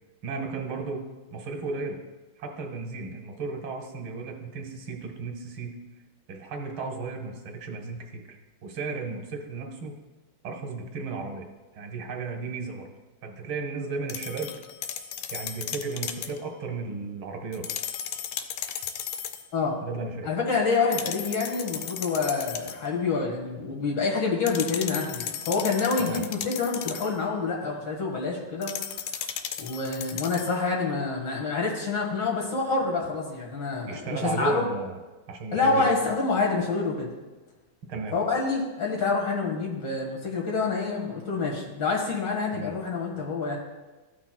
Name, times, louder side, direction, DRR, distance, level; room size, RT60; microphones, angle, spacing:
voice 1, 0.2-1.1 1.3-2.0 2.4-5.7 6.3-8.4 8.6-9.9 10.4-11.5 11.8-12.9 13.2-14.5 15.3-17.9 19.8-20.3 26.0-26.2 33.9-35.0 35.3-35.9 37.9-38.2 42.5-42.7, right 4 dB, 85° right, 2 dB, 1.9 m, -34 dB
sound 1, 14.1-16.4 17.5-19.5 20.9-22.9 24.5-27.2 28.6-30.6, left 9 dB, 85° left, 1.4 m, -35 dB
voice 2, 20.2-28.7 29.6-34.6 35.5-37.1 38.1-43.6, left 4 dB, 65° left, -2 dB, 2.2 m, -27 dB
13.5 x 6.0 x 2.2 m, 1.2 s
omnidirectional pair, 2.2 m